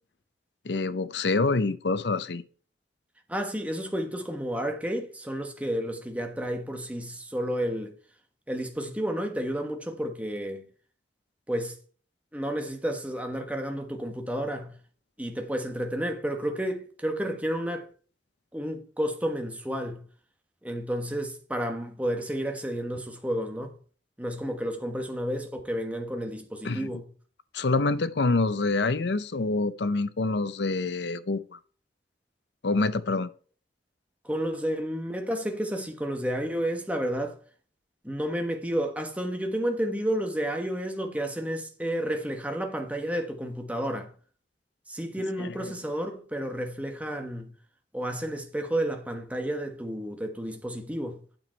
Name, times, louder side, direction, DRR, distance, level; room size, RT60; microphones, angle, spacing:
voice 1, 0.6-2.4 26.6-26.9 27.5-31.6 32.6-33.3 45.4-45.5, left 3 dB, 75° left, 0.7 m, -26 dB
voice 2, 3.3-7.9 8.5-10.7 11.5-11.8 12.3-14.7 15.2-17.9 18.5-20.1 20.6-23.7 24.2-27.1 34.2-37.4 38.0-44.1 44.9-47.5 47.9-51.2, equal, 10° right, 1.3 m, -31 dB
9.1 x 7.0 x 4.5 m
head